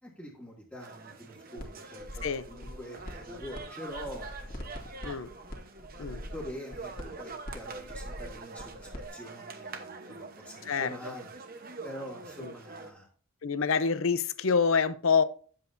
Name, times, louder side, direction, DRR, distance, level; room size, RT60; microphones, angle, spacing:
voice 1, 0.0-5.0 6.0-6.1 6.3-11.3 11.8-13.1, equal, 5° left, -3 dB, 1.6 m, -45 dB
sound 1, 0.8-12.9, right 3 dB, 40° right, 1.0 m, -45 dB
sound 2, 1.6-1.7 2.0-3.6 3.9-9.1, equal, 40° left, 1.9 m, -42 dB
voice 2, 13.4-15.2, left 5 dB, 70° left, 13 dB, 0.6 m, -26 dB
10.5 x 7.6 x 2.6 m, 0.43 s
head